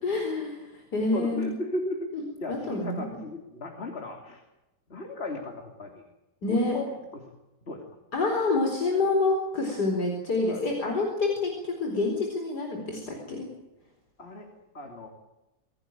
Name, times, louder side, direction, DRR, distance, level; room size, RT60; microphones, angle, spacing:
voice 1, 0.0-1.6 2.1-2.2 2.5-3.0 6.4-6.8 8.1-13.5, left 3 dB, 75° left, 2 dB, 4.9 m, -27 dB
voice 2, 1.1-2.1 2.4-4.4 4.9-5.9 6.5-7.2 7.7-7.8 10.4-10.6 14.2-14.5 14.7-15.1, left 2 dB, 35° left, 3 dB, 3.3 m, -36 dB
26.0 x 18.0 x 9.1 m, 1.0 s
omnidirectional pair, 1.8 m